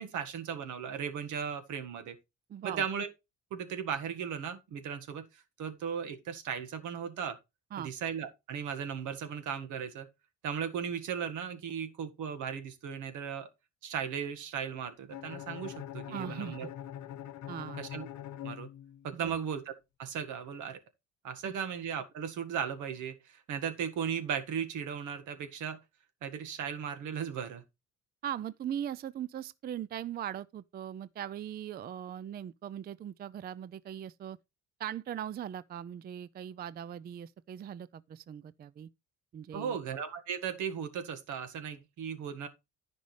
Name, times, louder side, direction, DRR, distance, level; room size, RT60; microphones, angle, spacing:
voice 1, 0.0-2.2 2.6-3.1 3.5-7.4 7.8-10.1 10.4-13.5 13.8-16.7 17.8-18.1 18.4-18.7 19.0-19.6 20.0-20.8 21.2-25.8 26.2-27.6 39.5-42.5, right 7 dB, 80° right, 1.7 m, -36 dB
voice 2, 2.5-2.8 7.7-7.9 16.1-16.6 17.5-17.8 19.2-19.4 21.4-21.5 28.2-34.4 34.8-38.9 39.3-39.8, right 10 dB, 35° right, 0.4 m, -40 dB
Bowed string instrument, 15.1-19.2, left 11 dB, 70° left, 1.0 m, -43 dB
14.5 x 5.3 x 3.3 m
cardioid pair, 135°, 30 cm